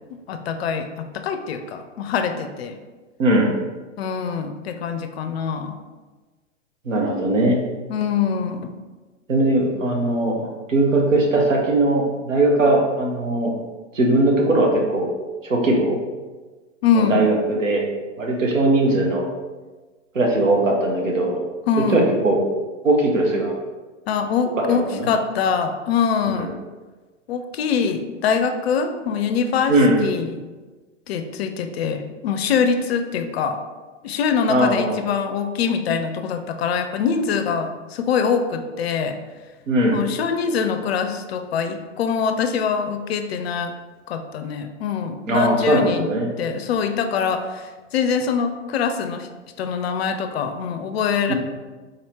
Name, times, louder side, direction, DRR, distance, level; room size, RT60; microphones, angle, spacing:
voice 1, 0.3-2.8 4.0-5.8 7.9-8.7 16.8-17.4 21.7-22.1 24.1-26.5 27.3-30.4 31.1-33.6 34.0-39.2 39.9-43.7 44.1-46.1 46.4-47.7 47.9-49.3 49.6-51.3, left 6 dB, 55° left, 8 dB, 0.4 m, -24 dB
voice 2, 3.2-3.5 6.8-7.6 9.3-13.6 13.9-15.1 15.4-16.0 16.9-17.8 18.2-19.3 20.1-21.4 21.8-22.4 22.8-23.6 24.6-25.1 26.4-26.5 29.7-30.0 34.5-35.0 39.7-40.0 45.3-46.3 51.3-51.4, right 1 dB, 80° right, 1 dB, 0.8 m, -19 dB
3.9 x 2.7 x 3.1 m, 1.3 s
figure-of-eight pair, 95°, 38 cm